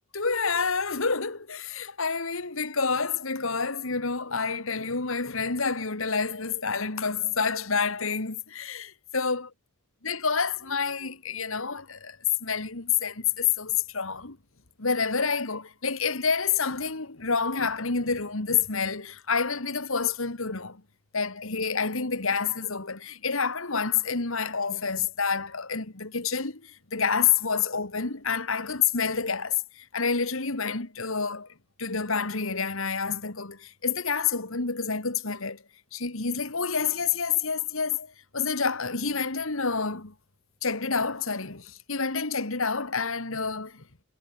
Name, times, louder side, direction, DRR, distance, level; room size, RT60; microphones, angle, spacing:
voice 1, 0.1-9.5 10.0-14.4 14.8-20.8 21.1-31.5 31.8-35.6 35.9-40.1 40.6-43.8, left 5 dB, 70° left, 2.1 m, -28 dB
head